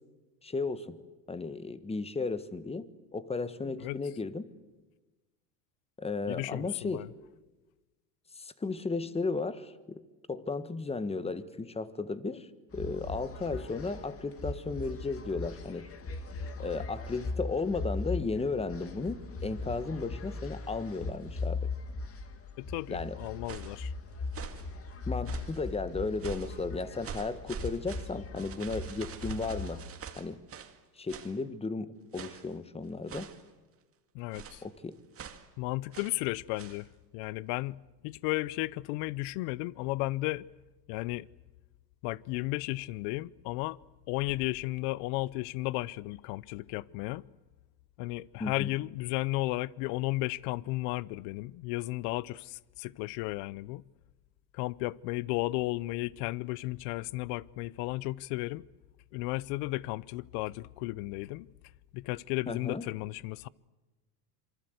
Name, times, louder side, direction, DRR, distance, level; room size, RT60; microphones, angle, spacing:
voice 1, 0.4-1.0 1.3-2.8 3.1-4.4 6.0-7.1 8.4-10.0 10.3-12.5 12.7-15.9 16.6-21.7 22.9-23.2 25.1-29.8 30.2-30.4 31.0-33.3 34.6-34.9 48.4-48.7 62.5-62.8, left 3 dB, 10° left, 1.5 m, -34 dB
voice 2, 6.3-7.1 22.6-23.9 34.1-34.6 35.6-40.4 40.9-41.3 42.0-43.8 44.1-47.3 48.0-53.8 54.5-58.7 59.1-61.5 61.9-63.5, left 20 dB, 55° left, 0.8 m, -34 dB
sound 1, 12.7-29.8, left 3 dB, 25° left, 2.4 m, -39 dB
sound 2, 23.2-23.8 24.3-24.7 25.2-25.7 26.2-26.6 27.0-30.8 31.1-31.4 32.1-32.5 33.1-33.5 34.3-34.7 35.1-35.5 35.9-36.2 36.6-36.8, right 6 dB, 30° right, 2.1 m, -44 dB
27.0 x 24.0 x 8.1 m
supercardioid pair, 115°, 49 cm